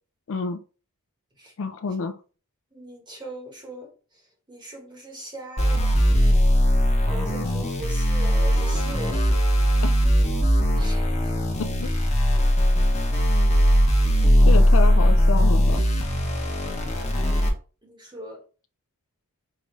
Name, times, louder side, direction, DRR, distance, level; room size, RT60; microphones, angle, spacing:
voice 1, 0.3-0.6 1.6-2.2 9.8-9.9 11.6-11.9 14.4-15.9, left 4 dB, 60° left, 0.4 m, -28 dB
voice 2, 2.7-3.9 4.5-5.9 7.1-9.2 10.8-11.0 17.8-18.4, right 1 dB, 20° right, 1.2 m, -39 dB
sound 1, 5.6-17.5, equal, 30° left, 0.8 m, -19 dB
4.9 x 2.6 x 3.0 m
head